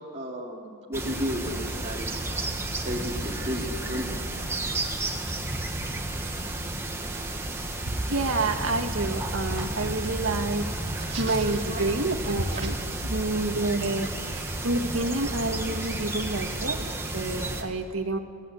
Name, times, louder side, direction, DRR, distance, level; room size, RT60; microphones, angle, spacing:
voice 1, 0.1-2.2 2.8-4.2 4.6-5.0 11.1-13.0 14.3-14.9, equal, 30° right, -3 dB, 2.7 m, -35 dB
sound 1, 0.9-17.6, right 2 dB, 10° right, 1.9 m, -32 dB
voice 2, 7.9-12.7 13.1-18.2, right 2 dB, 65° right, 4 dB, 1.9 m, -28 dB
28.0 x 18.0 x 8.7 m, 2.4 s
head